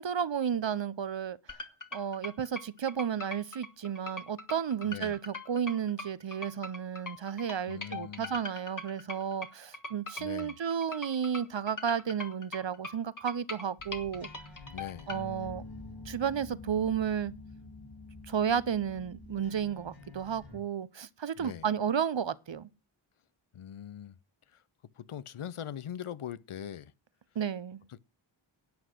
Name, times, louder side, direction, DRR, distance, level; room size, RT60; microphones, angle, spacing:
voice 1, 0.0-1.4 1.9-14.3 15.1-15.6 16.1-17.3 18.3-22.7 27.4-27.8, right 8 dB, 65° right, 0.8 m, -32 dB
sound 1, 1.5-15.2, left 2 dB, 40° left, 1.6 m, -42 dB
voice 2, 4.8-5.2 7.7-8.3 10.2-10.6 14.7-15.1 21.4-21.7 23.5-24.2 24.5-24.6 25.0-26.9 27.9-28.0, left 9 dB, 85° left, 0.7 m, -41 dB
sound 2, 13.8-20.6, left 3 dB, 65° left, 4.3 m, -47 dB
11.5 x 7.9 x 7.8 m
wide cardioid pair, 45°, 49 cm